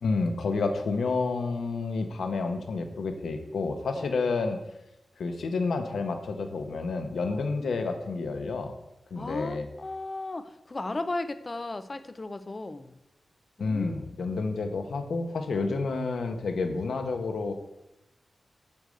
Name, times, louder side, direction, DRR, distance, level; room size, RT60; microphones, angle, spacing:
voice 1, 0.0-4.6 5.2-8.7 9.1-9.6 13.6-17.5, left 3 dB, 85° left, 6 dB, 1.2 m, -29 dB
voice 2, 9.2-12.9 13.6-14.1, left 2 dB, 30° left, 11 dB, 0.6 m, -36 dB
9.2 x 4.9 x 7.8 m, 0.90 s
wide cardioid pair, 110°, 0 cm